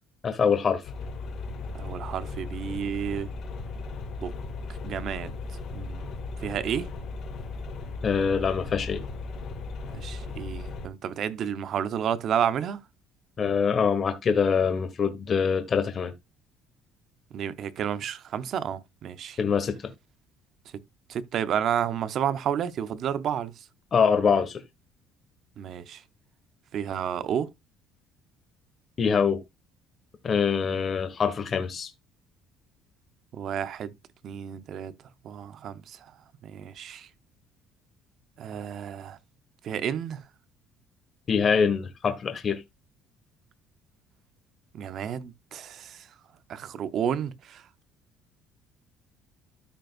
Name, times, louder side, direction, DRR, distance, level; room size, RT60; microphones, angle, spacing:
voice 1, 0.2-0.8 8.0-9.0 13.4-16.1 19.4-19.8 23.9-24.6 29.0-29.4 30.2-31.9 41.3-42.6, left 6 dB, 30° left, 1.3 m, -24 dB
sound 1, 0.8-10.9, left 3 dB, 45° left, 1.8 m, -36 dB
voice 2, 1.7-3.3 4.2-4.3 4.8-5.3 5.7-6.1 6.4-6.9 9.9-12.8 17.3-19.4 21.1-23.6 25.6-26.0 26.7-27.5 30.6-30.8 33.3-33.9 34.2-34.9 35.2-36.1 36.4-37.1 38.4-39.2 39.6-40.2 44.7-46.1 46.5-47.6, right 9 dB, 45° right, 0.7 m, -31 dB
13.5 x 5.2 x 2.4 m
cardioid pair, 170°, 0 cm